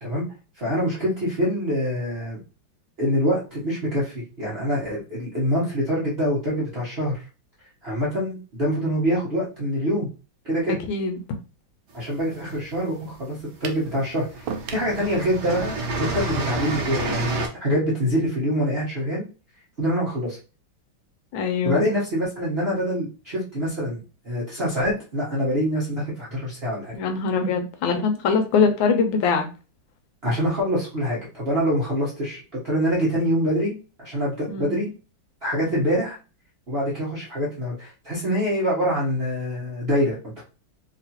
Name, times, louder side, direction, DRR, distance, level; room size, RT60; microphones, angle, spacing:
voice 1, 0.6-2.4 3.0-7.2 7.8-10.1 10.4-10.8 11.9-19.2 19.8-20.4 21.6-26.9 30.2-34.9 35.4-36.2 36.7-40.4, equal, 40° right, 1.0 m, -25 dB
voice 2, 10.7-11.2 21.3-21.9 26.9-29.4 34.5-34.9, left 5 dB, 75° left, 1.3 m, -23 dB
sound 1, 12.1-13.0 13.8-14.0 14.3-17.5, right 2 dB, 65° right, 1.2 m, -29 dB
sound 2, 13.6-13.9 14.5-14.9, right 7 dB, 85° right, 1.4 m, -33 dB
3.3 x 2.9 x 2.8 m
omnidirectional pair, 2.2 m